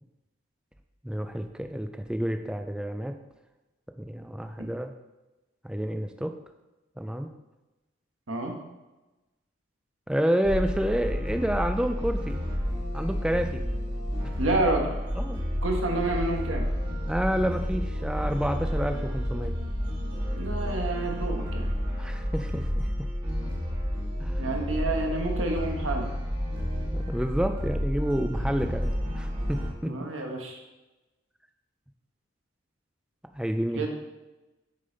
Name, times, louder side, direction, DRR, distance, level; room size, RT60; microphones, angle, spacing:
voice 1, 1.0-3.2 4.0-4.9 5.6-6.3 7.0-7.3 10.1-12.4 12.9-13.6 15.2-15.4 17.1-19.5 22.0-23.1 24.2-24.4 26.9-29.9 33.3-33.9, equal, 5° right, 6 dB, 0.4 m, -29 dB
sound 1, 10.4-29.7, equal, 25° right, 1.5 m, -30 dB
voice 2, 14.4-14.9 15.6-16.7 20.4-21.7 24.4-26.1 29.9-30.6 33.7-33.9, right 2 dB, 90° right, 1 dB, 1.3 m, -29 dB
6.6 x 5.4 x 3.9 m, 1.1 s
head